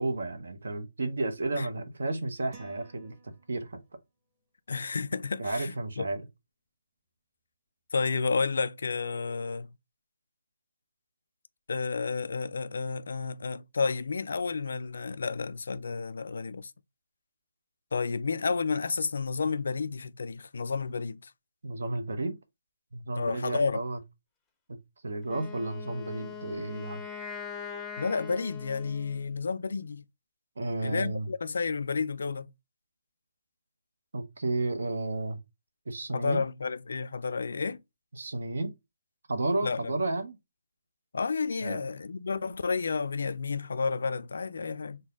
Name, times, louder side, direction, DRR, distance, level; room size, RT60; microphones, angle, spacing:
voice 1, 0.0-3.8 5.4-6.2 21.6-22.4 22.9-24.0 24.7-24.8 25.0-27.0 30.6-31.3 34.1-35.4 35.9-36.4 38.1-38.7 39.3-40.4 41.6-41.8, right 2 dB, 75° right, 0.8 m, -32 dB
sound 1, 2.5-4.0, right 3 dB, 15° right, 0.8 m, -55 dB
voice 2, 4.7-6.1 7.9-9.7 11.7-16.7 17.9-21.3 23.1-23.8 28.0-30.0 30.8-32.5 36.1-37.8 39.6-39.9 41.1-45.0, left 4 dB, 70° left, 0.3 m, -31 dB
Wind instrument woodwind instrument, 25.2-29.4, left 6 dB, 5° left, 0.5 m, -42 dB
3.9 x 2.2 x 3.5 m
hypercardioid pair, 160°, 0 cm